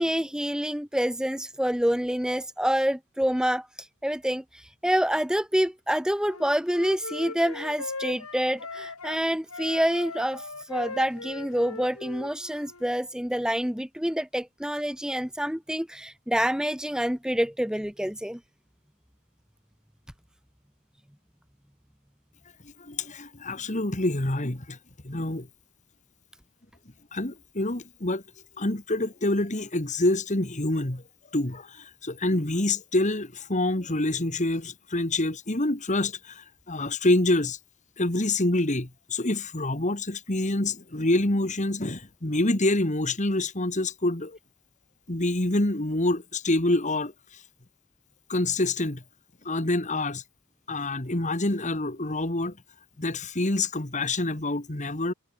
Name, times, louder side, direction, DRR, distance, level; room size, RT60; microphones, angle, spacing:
voice 1, 0.0-3.7 4.0-18.4, equal, 5° right, 1.3 m, -27 dB
Wind instrument woodwind instrument, 6.3-9.2 9.5-12.9, left 3 dB, 80° left, 4.7 m, -39 dB
voice 2, 22.8-24.8 25.0-25.5 27.1-28.2 28.6-31.0 31.3-37.6 38.0-44.4 45.1-47.1 48.3-49.0 49.5-50.2 50.7-52.6 53.0-55.1, left 2 dB, 35° left, 2.0 m, -26 dB
head